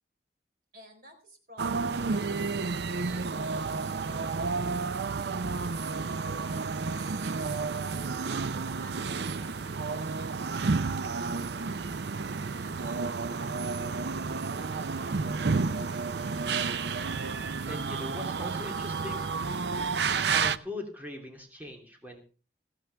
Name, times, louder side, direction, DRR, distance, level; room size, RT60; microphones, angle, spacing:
voice 1, 0.7-2.4 8.5-13.1, equal, 50° right, 3 dB, 4.2 m, -55 dB
sound 1, 1.6-20.6, right 4 dB, 65° right, 0.6 m, -31 dB
voice 2, 17.7-19.3 20.2-22.2, left 1 dB, 10° right, 2 dB, 2.9 m, -40 dB
15.5 x 15.0 x 3.4 m, 0.36 s
head